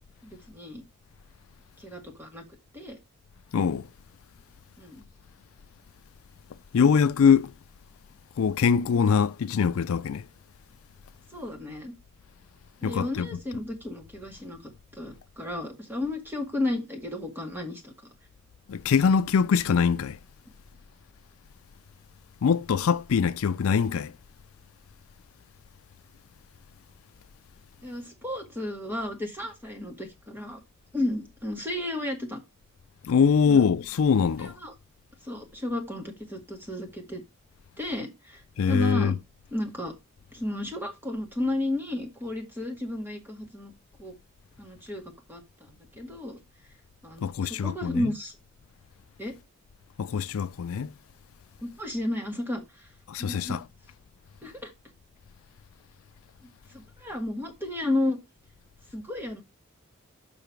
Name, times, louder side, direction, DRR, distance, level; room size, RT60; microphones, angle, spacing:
voice 1, 0.2-0.8 1.8-2.4 2.7-3.0 4.8-5.0 11.3-11.9 12.8-14.6 14.9-17.9 27.8-30.6 30.9-32.4 33.5-33.6 34.4-34.7 35.2-37.2 37.8-39.2 39.5-39.9 40.3-43.7 44.0-44.1 44.6-45.0 45.3-46.4 47.0-48.3 49.2-49.4 51.6-52.9 53.2-53.6 54.4-54.7 56.7-58.2 58.9-59.4, left 1 dB, 10° right, 1.9 m, -33 dB
voice 2, 3.5-3.9 6.7-7.5 8.4-10.3 12.8-13.3 18.7-20.2 22.4-24.1 33.0-34.6 38.6-39.1 47.2-48.1 50.0-50.9 53.1-53.6, left 6 dB, 75° left, 0.4 m, -23 dB
7.0 x 5.5 x 4.5 m
head